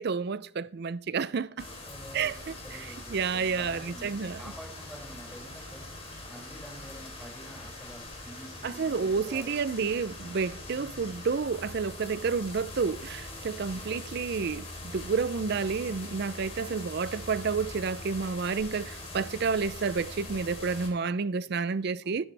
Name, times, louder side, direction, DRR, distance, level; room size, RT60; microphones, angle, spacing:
voice 1, 0.0-1.7 2.1-2.3 3.1-4.4 8.6-22.3, right 5 dB, 50° right, 0.4 m, -30 dB
sound 1, 1.6-20.9, left 2 dB, 30° left, 3.4 m, -42 dB
voice 2, 1.8-10.0 10.7-11.3 13.7-14.5 22.0-22.3, equal, ahead, 5.9 m, -48 dB
20.0 x 10.0 x 3.4 m
head